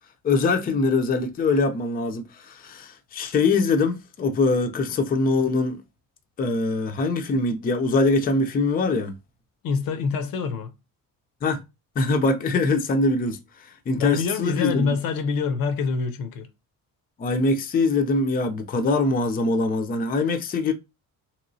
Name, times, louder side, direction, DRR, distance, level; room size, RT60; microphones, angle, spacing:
voice 1, 0.2-5.8 6.4-9.1 11.4-11.6 12.0-14.9 17.2-20.7, left 3 dB, 25° left, 0.4 m, -23 dB
voice 2, 9.6-10.7 14.0-16.5, left 5 dB, 70° left, 0.6 m, -26 dB
3.0 x 3.0 x 2.6 m
cardioid pair, 135°, 36 cm